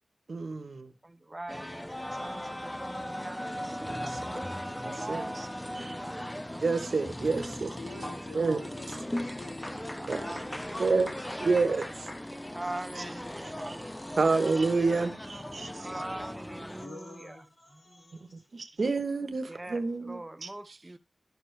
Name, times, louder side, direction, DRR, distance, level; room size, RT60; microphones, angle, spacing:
voice 1, 0.3-0.9 4.0-4.2 4.8-5.5 5.7-5.9 6.6-7.7 8.3-8.6 10.1-10.2 10.8-11.1 11.4-12.1 13.0-13.1 13.4-13.8 14.2-15.9 18.5-20.8, right 4 dB, 70° right, 1.1 m, -29 dB
voice 2, 1.0-1.9 2.2-5.5 5.8-6.3 7.9-8.0 8.5-8.6 10.0-10.4 12.5-14.2 15.8-16.8 19.5-21.0, right 1 dB, 25° right, 0.6 m, -42 dB
sound 1, 1.5-16.9, left 1 dB, 10° left, 0.6 m, -38 dB
voice 3, 7.1-11.0 13.1-13.5 14.1-14.3 14.8-16.0 16.7-18.5, left 2 dB, 65° left, 5.2 m, -49 dB
11.5 x 6.5 x 3.3 m
wide cardioid pair, 65°, 0 cm